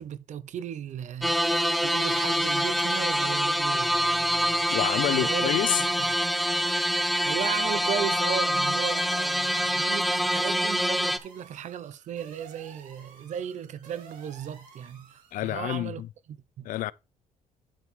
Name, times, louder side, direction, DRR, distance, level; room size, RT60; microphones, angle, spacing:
voice 1, 0.0-4.7 5.1-5.5 5.8-6.1 6.9-16.0 16.3-16.7, right 9 dB, 60° right, 0.9 m, -36 dB
sound 1, 1.2-11.2, equal, ahead, 0.8 m, -25 dB
voice 2, 4.7-5.8 15.3-16.1 16.6-16.9, left 15 dB, 75° left, 0.4 m, -28 dB
sound 2, 8.8-15.5, right 5 dB, 80° right, 4.1 m, -51 dB
11.5 x 4.5 x 3.7 m
cardioid pair, 115°, 14 cm